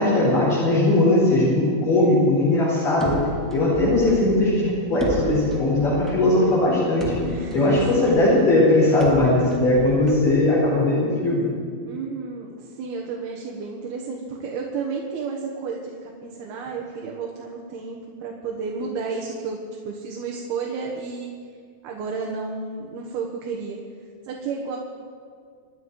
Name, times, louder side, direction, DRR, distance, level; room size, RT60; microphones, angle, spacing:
voice 1, 0.0-3.2 3.5-7.2 7.5-11.5, left 2 dB, 60° left, -8 dB, 6.1 m, -19 dB
sound 1, 3.0-10.9, right 1 dB, ahead, 1.6 m, -35 dB
voice 2, 7.2-8.1 11.9-19.6 19.9-21.3 21.8-23.8 24.2-24.8, right 4 dB, 90° right, -1 dB, 3.4 m, -32 dB
28.0 x 10.5 x 4.8 m, 2.1 s
omnidirectional pair, 4.3 m